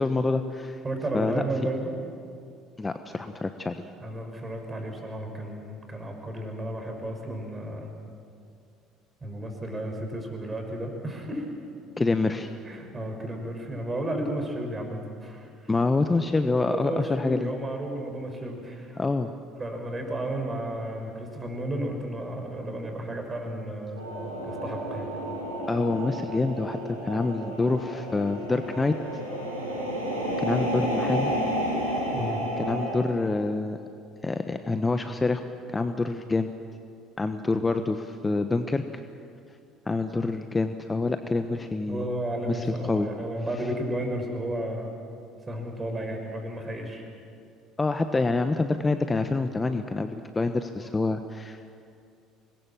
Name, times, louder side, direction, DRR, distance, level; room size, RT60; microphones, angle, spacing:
voice 1, 0.0-0.8 1.1-1.4 2.8-3.8 12.0-12.5 15.7-17.5 18.9-19.3 25.7-28.9 30.4-31.3 32.6-33.8 34.2-35.4 35.7-36.5 37.2-39.0 39.9-42.1 42.4-43.1 47.8-51.7, left 3 dB, 20° left, 8 dB, 1.1 m, -26 dB
voice 2, 0.8-2.0 4.0-7.9 9.2-11.5 12.7-15.7 16.6-19.0 19.6-24.2 24.4-25.1 32.1-32.4 41.9-45.0 45.5-47.0, right 1 dB, 25° right, 3 dB, 6.0 m, -33 dB
sound 1, 24.0-33.0, equal, 85° right, 5.5 m, -31 dB
25.0 x 21.0 x 7.5 m, 2.4 s
figure-of-eight pair, 60°, 0 cm